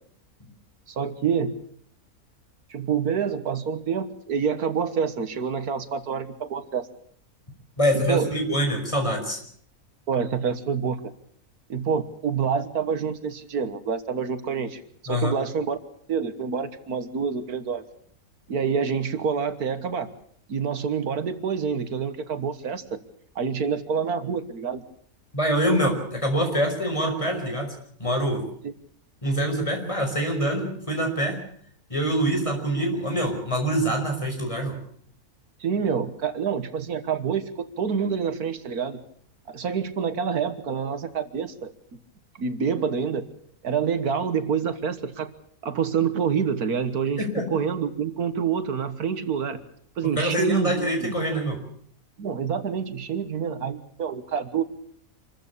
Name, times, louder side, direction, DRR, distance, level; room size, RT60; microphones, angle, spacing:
voice 1, 0.9-1.6 2.7-6.9 7.9-8.3 10.1-11.0 11.7-15.8 16.1-17.8 18.5-20.1 20.5-23.0 23.4-24.8 28.6-28.7 35.6-39.0 39.5-42.0 42.4-43.3 43.6-45.3 45.6-49.6 50.0-51.2 52.2-54.6, right 6 dB, 80° right, 11 dB, 1.9 m, -27 dB
voice 2, 7.8-9.4 15.1-15.3 25.3-27.7 28.0-28.4 29.2-31.4 31.9-34.8 47.2-47.5 50.2-51.6, equal, 20° left, 3 dB, 5.2 m, -25 dB
26.5 x 14.0 x 8.5 m, 0.62 s
omnidirectional pair, 1.6 m